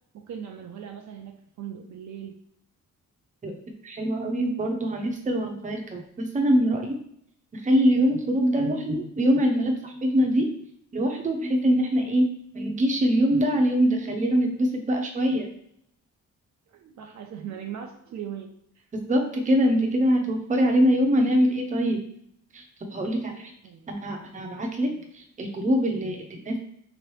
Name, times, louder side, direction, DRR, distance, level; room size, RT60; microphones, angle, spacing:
voice 1, 0.1-2.4 16.7-18.9 23.6-23.9 24.9-25.0, right 8 dB, 60° right, 4 dB, 0.5 m, -39 dB
voice 2, 3.8-7.0 7.5-10.6 10.9-15.5 19.1-22.0 22.5-22.6 22.9-23.5 23.9-26.6, equal, 25° right, 2 dB, 0.7 m, -23 dB
3.8 x 3.0 x 3.1 m, 0.69 s
cardioid pair, 135°, 33 cm